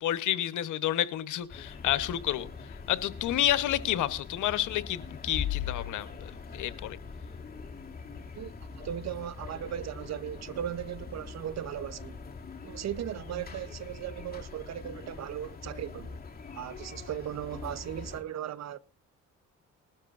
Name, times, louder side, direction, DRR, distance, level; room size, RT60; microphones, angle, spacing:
voice 1, 0.0-2.5 2.9-7.0, left 12 dB, 80° left, 1.0 m, -30 dB
sound 1, 1.5-18.2, left 6 dB, 30° left, 2.5 m, -42 dB
voice 2, 8.8-12.2 12.6-16.2 16.5-18.8, right 10 dB, 60° right, 0.8 m, -37 dB
19.5 x 12.5 x 2.5 m
cardioid pair, 90°, 30 cm